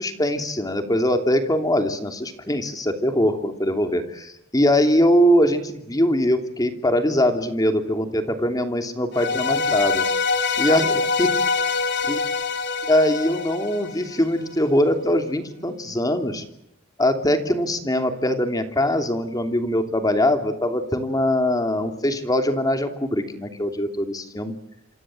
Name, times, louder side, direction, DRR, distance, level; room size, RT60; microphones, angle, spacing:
voice 1, 0.0-10.0 10.6-11.3 12.1-12.2 12.9-16.4 17.0-24.5, left 1 dB, 20° left, 6 dB, 3.0 m, -22 dB
sound 1, 9.1-14.4, left 4 dB, 60° left, 2.7 m, -24 dB
28.0 x 26.5 x 7.8 m, 0.77 s
head